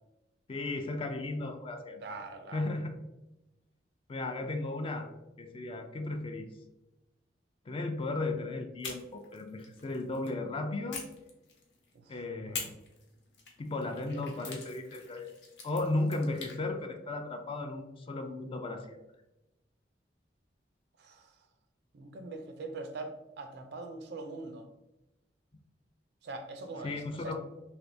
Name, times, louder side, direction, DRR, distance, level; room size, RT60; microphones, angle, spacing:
voice 1, 0.5-2.0 2.5-3.0 4.1-5.1 5.4-6.5 7.7-11.0 12.1-12.7 13.6-15.3 15.6-19.0 26.8-27.4, left 2 dB, 30° left, 5 dB, 0.4 m, -35 dB
voice 2, 2.0-2.6 11.9-12.0 12.4-12.6 21.0-21.3 21.9-24.7 26.2-27.4, right 3 dB, 65° right, 6 dB, 0.4 m, -42 dB
sound 1, 8.8-10.4 10.9-11.9 12.5-16.6, left 4 dB, 65° left, 0.7 m, -45 dB
3.3 x 2.8 x 2.6 m, 0.97 s
head